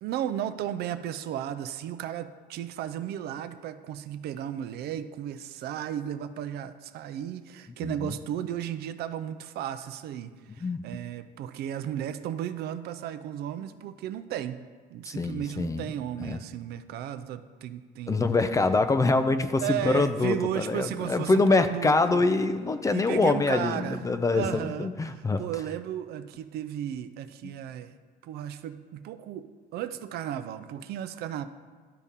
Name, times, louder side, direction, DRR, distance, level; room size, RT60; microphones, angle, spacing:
voice 1, 0.0-14.6 14.9-18.2 19.6-22.2 22.9-24.0 24.3-27.9 28.2-31.5, right 10 dB, 70° right, 12 dB, 0.4 m, -34 dB
voice 2, 7.8-8.1 10.6-10.8 15.1-15.9 16.2-16.4 18.1-25.4, left 3 dB, 20° left, 10 dB, 0.4 m, -25 dB
12.0 x 4.1 x 3.6 m, 1.5 s
cardioid pair, 110°, 17 cm